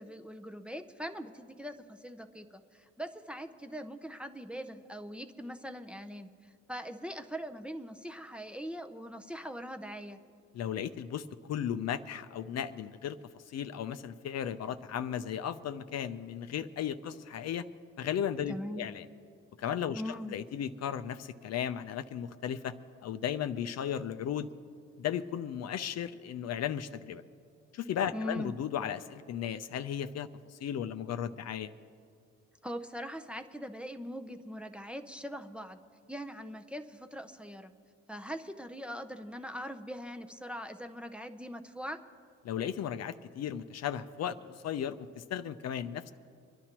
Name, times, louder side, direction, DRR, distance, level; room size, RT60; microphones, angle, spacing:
voice 1, 0.0-10.2 18.5-18.9 19.9-20.3 28.1-28.5 32.6-35.8 36.1-37.7 38.1-42.0, equal, 5° right, 6 dB, 0.6 m, -41 dB
voice 2, 10.5-17.6 18.0-19.0 19.6-22.7 23.0-24.5 25.0-27.2 27.7-31.7 42.4-46.1, left 9 dB, 60° left, 12 dB, 0.5 m, -35 dB
26.5 x 11.0 x 2.9 m, 2.3 s
cardioid pair, 90°, 30 cm